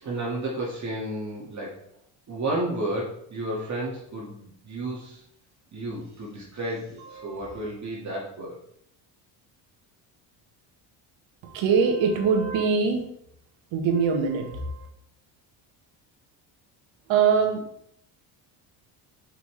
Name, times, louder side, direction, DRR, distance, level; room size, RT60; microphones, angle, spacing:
voice 1, 0.0-1.8 2.3-5.2 5.7-8.6, right 1 dB, 35° right, -5 dB, 2.0 m, -32 dB
voice 2, 7.0-7.6 11.4-13.0 13.7-14.9 17.1-17.6, right 6 dB, 70° right, 2 dB, 1.6 m, -23 dB
5.8 x 5.6 x 3.3 m, 0.71 s
supercardioid pair, 95°, 47 cm